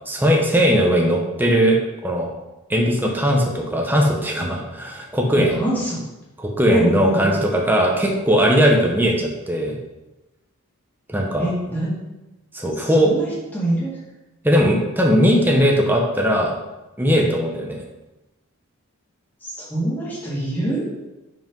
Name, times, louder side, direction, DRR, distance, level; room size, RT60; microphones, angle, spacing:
voice 1, 0.1-1.8 2.0-2.3 2.7-5.6 6.4-9.8 11.1-11.5 12.5-13.1 14.4-16.5 17.0-17.8, equal, 10° right, 0 dB, 0.8 m, -19 dB
voice 2, 5.6-6.0 6.7-7.3 11.4-12.0 12.8-14.0 19.4-20.8, right 1 dB, 10° left, -8 dB, 2.0 m, -25 dB
5.6 x 5.3 x 5.3 m, 1.0 s
head